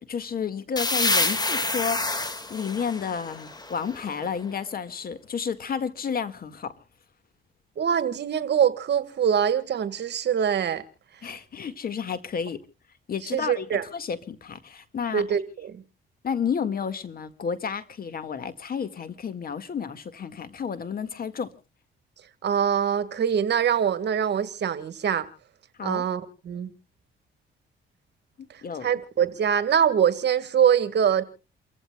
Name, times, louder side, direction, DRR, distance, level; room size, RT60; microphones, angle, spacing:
voice 1, 0.1-6.8 11.2-12.6 13.1-15.2 16.2-21.5 25.8-26.0 28.4-28.9, left 6 dB, 50° left, 1.9 m, -31 dB
sound 1, 0.8-4.4, left 2 dB, 20° left, 2.0 m, -28 dB
voice 2, 7.8-10.8 13.3-13.8 15.1-15.8 22.4-25.3 25.8-26.7 28.8-31.2, right 8 dB, 60° right, 1.7 m, -24 dB
29.0 x 15.5 x 2.3 m
cardioid pair, 90°, 20 cm